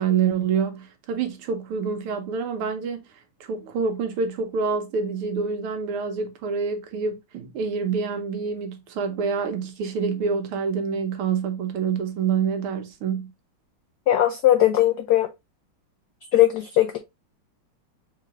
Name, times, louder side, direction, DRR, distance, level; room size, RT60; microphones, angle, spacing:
voice 1, 0.0-3.0 3.4-13.3, right 6 dB, 80° right, 1.8 m, -27 dB
voice 2, 14.1-15.3 16.3-17.0, left 13 dB, 85° left, 0.8 m, -19 dB
4.3 x 3.9 x 2.9 m
omnidirectional pair, 2.4 m